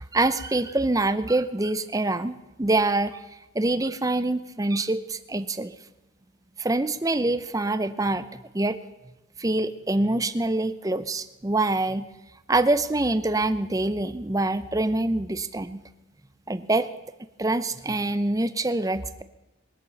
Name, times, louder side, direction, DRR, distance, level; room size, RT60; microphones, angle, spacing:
voice 1, 0.0-3.2 3.5-5.7 6.6-8.3 8.5-8.8 9.4-12.1 12.5-15.8 16.5-16.9 17.4-19.2, right 2 dB, 15° right, 13 dB, 0.6 m, -25 dB
22.0 x 8.3 x 7.0 m, 1.0 s
head